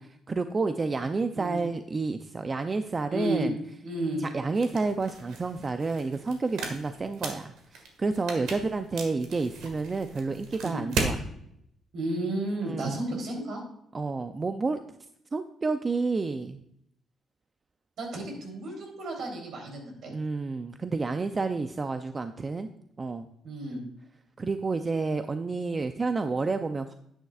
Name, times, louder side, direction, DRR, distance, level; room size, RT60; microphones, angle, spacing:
voice 1, 0.3-3.6 4.2-11.2 12.6-13.0 13.9-14.8 15.3-16.6 20.1-22.7 23.0-23.3 24.4-26.9, right 3 dB, 30° right, 8 dB, 0.5 m, -30 dB
voice 2, 3.1-3.5 3.8-4.2 10.6-10.8 11.9-13.6 18.0-20.1 23.4-23.9, right 1 dB, 70° right, 1 dB, 3.4 m, -32 dB
sound 1, 4.5-11.2, right 4 dB, 90° right, 1.7 m, -37 dB
10.0 x 9.2 x 2.4 m, 0.74 s
cardioid pair, 90°, 0 cm